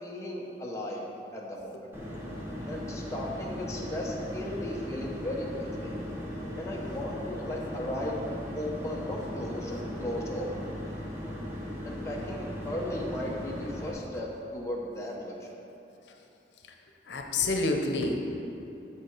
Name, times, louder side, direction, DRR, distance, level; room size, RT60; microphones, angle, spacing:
voice 1, 0.0-1.0 1.3-1.8 2.7-5.9 6.6-8.2 8.6-10.5 11.8-15.6, left 1 dB, 15° left, -3 dB, 1.0 m, -36 dB
sound 1, 1.9-13.9, equal, 15° right, 1.2 m, -38 dB
voice 2, 17.1-18.2, left 3 dB, 90° left, 3 dB, 0.8 m, -28 dB
7.9 x 6.8 x 4.6 m, 2.9 s
head